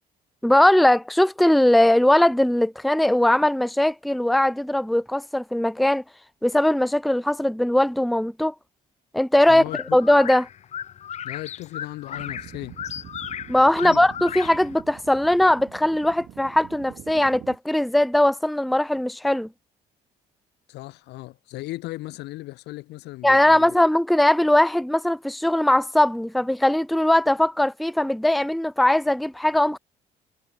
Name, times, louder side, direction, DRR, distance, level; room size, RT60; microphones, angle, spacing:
voice 1, 0.4-6.0 6.4-8.5 9.1-9.6 9.9-10.5 13.5-19.5 23.2-29.8, left 1 dB, ahead, 0.6 m, -20 dB
sound 1, 9.3-14.8, left 9 dB, 40° left, 0.6 m, -36 dB
voice 2, 9.5-10.0 11.2-12.8 13.8-14.0 20.7-23.7, left 19 dB, 85° left, 1.5 m, -36 dB
sound 2, 12.1-17.6, right 13 dB, 65° right, 6.9 m, -44 dB
cardioid pair, 110°, 17 cm